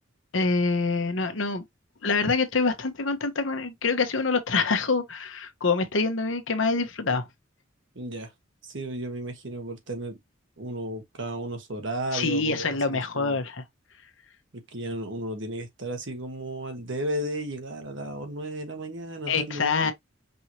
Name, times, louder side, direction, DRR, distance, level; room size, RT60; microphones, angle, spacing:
voice 1, 0.3-1.6 2.0-7.3 12.1-13.6 19.3-19.9, left 4 dB, 80° left, 1.0 m, -25 dB
voice 2, 7.9-8.3 8.6-10.2 10.6-13.4 14.5-19.9, right 1 dB, 65° right, 1.4 m, -34 dB
5.4 x 2.9 x 3.0 m
head